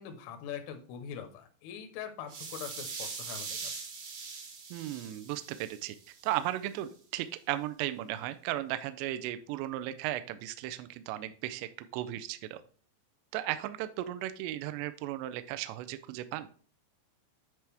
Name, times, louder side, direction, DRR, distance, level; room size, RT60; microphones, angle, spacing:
voice 1, 0.0-3.8, left 8 dB, 90° left, 7 dB, 3.5 m, -43 dB
sound 1, 2.3-6.4, right 5 dB, 60° right, 1.9 m, -42 dB
voice 2, 4.7-6.0 6.2-12.6 13.3-16.5, right 14 dB, 85° right, 11 dB, 2.5 m, -36 dB
10.5 x 4.8 x 3.4 m, 0.42 s
omnidirectional pair, 5.4 m